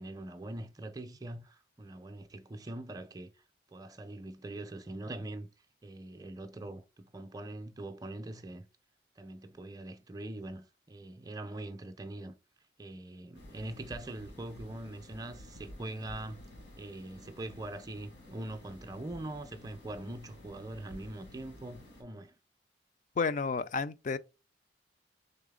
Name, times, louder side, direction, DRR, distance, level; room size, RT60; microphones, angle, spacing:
voice 1, 0.0-3.3 3.7-5.5 5.8-8.7 9.2-12.3 12.8-16.5 16.8-22.3, right 1 dB, 20° right, 0.5 m, -43 dB
sound 1, 13.3-22.0, left 1 dB, 80° left, 1.8 m, -52 dB
voice 2, 23.2-24.2, left 4 dB, 45° left, 0.3 m, -31 dB
4.0 x 3.6 x 3.6 m
head